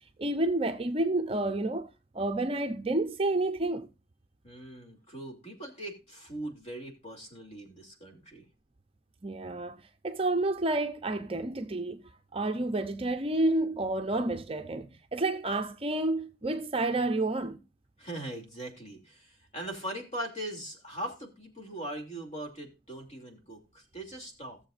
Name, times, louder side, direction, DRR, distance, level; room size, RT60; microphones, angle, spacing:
voice 1, 0.2-1.9 2.1-3.9 9.2-17.6, right 2 dB, 30° right, 0.6 m, -30 dB
voice 2, 4.4-8.5 18.0-24.6, right 1 dB, 35° left, 2.8 m, -40 dB
17.0 x 7.2 x 2.5 m
head